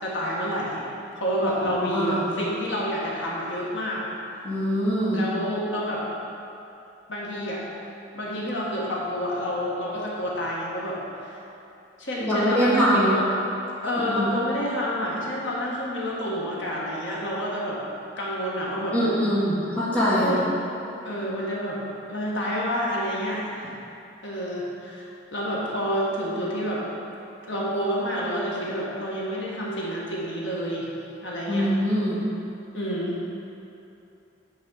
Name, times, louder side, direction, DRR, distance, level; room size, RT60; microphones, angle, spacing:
voice 1, 0.0-0.9 1.1-4.0 5.1-6.0 7.1-7.6 8.1-11.3 12.0-13.2 13.8-17.8 18.2-19.0 20.2-20.5 21.0-21.8 22.1-23.6 24.2-26.8 27.5-30.9 31.2-31.7 32.7-33.2, equal, 70° left, -5 dB, 1.5 m, -28 dB
voice 2, 1.7-2.2 4.4-5.2 12.2-13.2 14.1-14.3 18.9-20.3 31.5-32.2, equal, 10° left, -9 dB, 1.5 m, -23 dB
8.4 x 4.2 x 6.3 m, 2.8 s
head